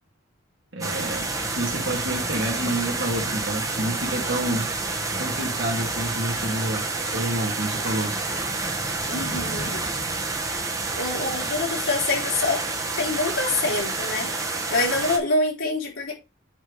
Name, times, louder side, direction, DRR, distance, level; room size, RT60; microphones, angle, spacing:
voice 1, 0.7-1.3 1.6-4.7 5.2-6.9 7.1-8.1, right 1 dB, 65° right, 2.4 m, -28 dB
sound 1, 0.8-15.2, right 3 dB, 15° right, 1.3 m, -28 dB
voice 2, 9.1-9.8 11.0-12.6 13.0-14.3 14.7-16.1, left 3 dB, 90° left, 4.0 m, -25 dB
8.8 x 3.4 x 4.9 m
head